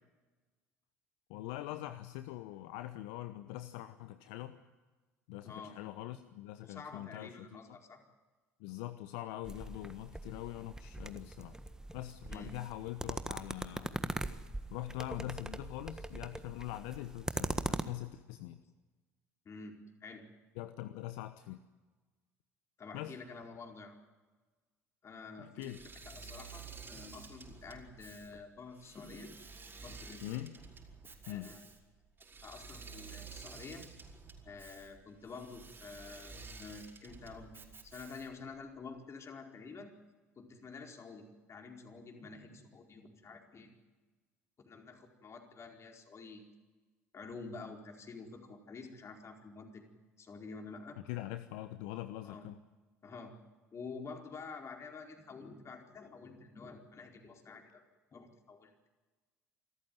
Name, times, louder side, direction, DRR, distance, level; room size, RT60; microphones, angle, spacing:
voice 1, 1.3-4.6 5.3-7.8 8.6-11.6 11.9-14.2 14.7-18.6 20.6-21.6 22.9-23.1 25.4-25.8 30.2-30.5 31.3-31.5 51.1-52.5, left 15 dB, 65° left, 11 dB, 1.0 m, -43 dB
voice 2, 5.4-5.8 6.6-8.0 12.3-12.5 19.4-20.3 22.8-24.0 25.0-29.4 29.8-30.4 31.2-31.6 32.4-33.8 34.4-39.9 40.4-41.2 41.5-43.7 44.6-46.4 47.1-49.9 50.2-51.0 52.2-52.4 53.0-53.3 53.7-57.8 58.1-58.9, left 4 dB, 35° left, 2 dB, 4.6 m, -49 dB
sound 1, 9.4-17.8, right 2 dB, 10° right, 1.5 m, -41 dB
Engine / Mechanisms, 25.6-38.5, right 4 dB, 25° right, 4.8 m, -51 dB
27.0 x 14.0 x 9.4 m, 1.3 s
hypercardioid pair, 65°, 8 cm